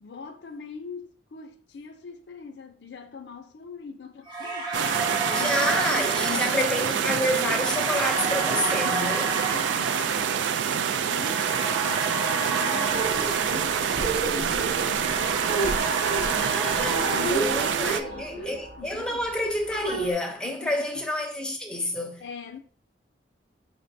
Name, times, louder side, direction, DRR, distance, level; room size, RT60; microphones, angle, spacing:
voice 1, 0.0-7.2 9.2-19.2 20.4-21.0 22.2-22.6, left 5 dB, 70° left, 0.5 m, -42 dB
sound 1, 4.3-14.5 14.8-18.2, right 3 dB, 25° right, 0.8 m, -32 dB
sound 2, 4.7-18.0, right 8 dB, 80° right, 0.3 m, -26 dB
voice 2, 5.3-9.4 16.4-22.2, left 1 dB, 5° left, 0.7 m, -29 dB
sound 3, 12.9-20.1, right 2 dB, 55° right, 0.7 m, -32 dB
4.4 x 3.2 x 2.6 m
head